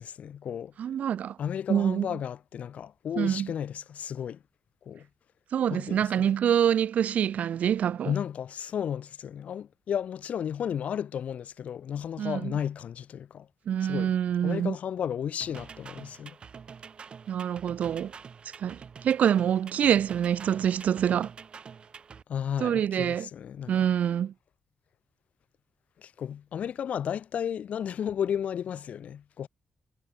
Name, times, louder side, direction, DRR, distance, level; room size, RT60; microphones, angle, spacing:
voice 1, 0.0-0.7 1.4-4.4 4.9-5.1 5.7-6.3 8.0-13.5 13.8-14.1 14.4-16.4 22.3-23.8 26.0-29.5, left 8 dB, 60° left, 3.9 m, -33 dB
voice 2, 0.8-1.4 1.7-2.2 3.2-3.5 5.5-8.1 12.2-12.5 13.7-14.7 17.3-18.1 18.6-21.3 22.6-23.3 23.7-24.3, right 9 dB, 65° right, 2.5 m, -26 dB
sound 1, 15.4-22.2, right 6 dB, 40° right, 6.3 m, -47 dB
wide cardioid pair, 175°, 3 cm